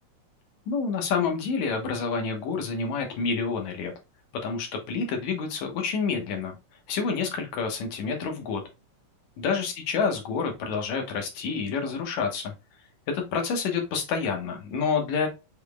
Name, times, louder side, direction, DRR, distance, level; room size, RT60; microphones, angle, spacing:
voice 1, 0.7-3.9 4.4-6.5 6.9-8.6 9.4-12.5 13.1-15.3, left 5 dB, 70° left, 3 dB, 2.3 m, -28 dB
5.4 x 3.6 x 2.3 m, 0.26 s
omnidirectional pair, 3.5 m